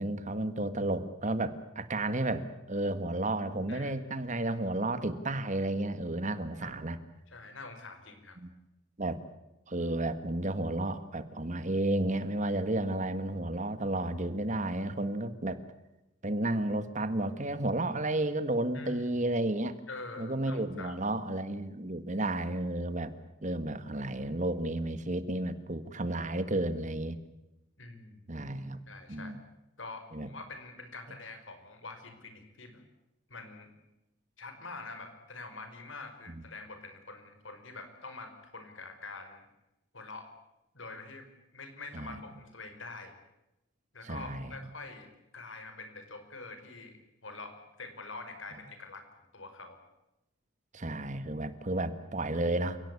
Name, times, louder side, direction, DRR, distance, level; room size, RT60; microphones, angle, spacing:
voice 1, 0.0-7.0 8.4-8.5 9.0-9.2 9.7-15.6 16.2-19.8 20.2-23.1 23.4-27.2 28.3-28.8 29.1-29.4 30.1-30.3 36.3-36.4 41.9-42.2 44.0-44.5 50.7-52.8, right 2 dB, 40° right, 12 dB, 1.7 m, -32 dB
voice 2, 7.3-8.4 18.7-19.1 19.9-21.0 27.8-28.3 28.9-29.4 29.8-32.8 33.3-33.7 34.4-39.5 39.9-40.3 40.7-41.3 41.5-43.1 43.9-47.0 47.2-49.0 49.3-49.8, left 3 dB, 70° left, 8 dB, 5.4 m, -45 dB
29.5 x 18.0 x 8.4 m, 0.93 s
head